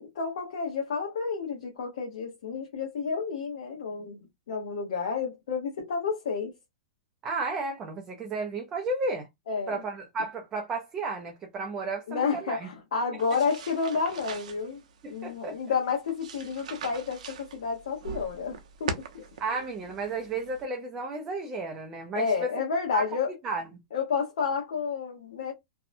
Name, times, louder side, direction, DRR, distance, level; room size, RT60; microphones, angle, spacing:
voice 1, 0.0-4.2 4.5-6.5 9.5-9.8 12.1-14.8 15.1-19.2 22.1-23.3 23.9-25.5, left 5 dB, 65° left, 0.8 m, -30 dB
voice 2, 7.2-9.3 9.7-12.7 15.0-15.6 19.4-22.5 22.9-23.1 23.4-23.7, right 3 dB, 15° right, 0.3 m, -33 dB
sound 1, 13.2-20.6, right 5 dB, 65° right, 0.6 m, -42 dB
2.6 x 2.0 x 2.5 m
supercardioid pair, 175°, 4 cm